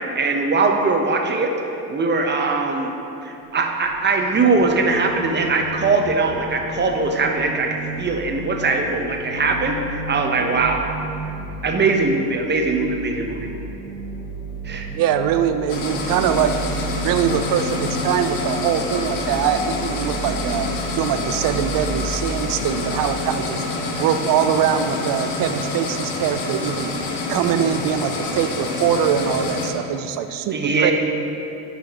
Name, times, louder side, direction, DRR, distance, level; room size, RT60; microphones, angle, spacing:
voice 1, 0.1-1.5 1.9-2.9 3.2-10.8 11.3-13.5 14.6-14.9 30.5-30.9, right 3 dB, 25° right, 3 dB, 0.8 m, -21 dB
sound 1, 3.4-22.9, right 1 dB, 5° left, 1.5 m, -32 dB
voice 2, 14.9-16.6 17.0-20.7 21.0-23.6 24.0-26.9 27.3-30.9, right 9 dB, 50° right, 9 dB, 0.5 m, -22 dB
sound 2, 15.7-29.7, left 3 dB, 60° left, 1.1 m, -27 dB
8.6 x 5.7 x 2.9 m, 2.9 s
hypercardioid pair, 75°, 46 cm